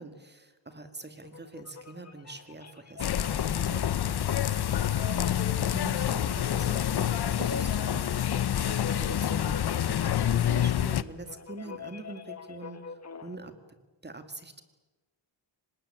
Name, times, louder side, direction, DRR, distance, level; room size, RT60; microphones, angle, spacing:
voice 1, 0.0-13.8 14.0-14.6, right 3 dB, 20° right, 9 dB, 2.2 m, -44 dB
sound 1, 1.3-13.4, left 5 dB, 35° left, 1.4 m, -45 dB
sound 2, 3.0-11.0, left 10 dB, 55° left, 0.8 m, -27 dB
26.0 x 20.0 x 8.8 m, 1.2 s
wide cardioid pair, 135°, 47 cm